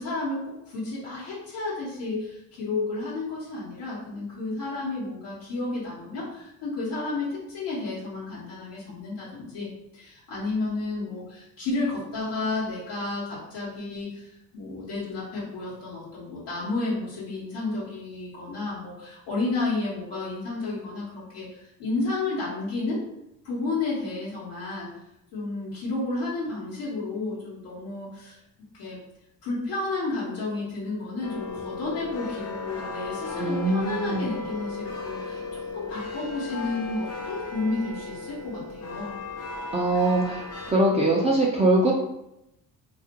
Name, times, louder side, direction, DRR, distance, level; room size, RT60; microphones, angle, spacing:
voice 1, 0.0-23.0 23.4-24.9 25.3-28.4 28.7-29.0 29.4-39.2, left 3 dB, 80° left, -8 dB, 0.9 m, -32 dB
sound 1, 31.2-40.7, left 3 dB, 40° left, 0.6 m, -35 dB
voice 2, 33.3-34.3 39.7-41.9, right 1 dB, 15° right, -4 dB, 0.4 m, -22 dB
2.4 x 2.1 x 2.8 m, 0.85 s
supercardioid pair, 75°, 41 cm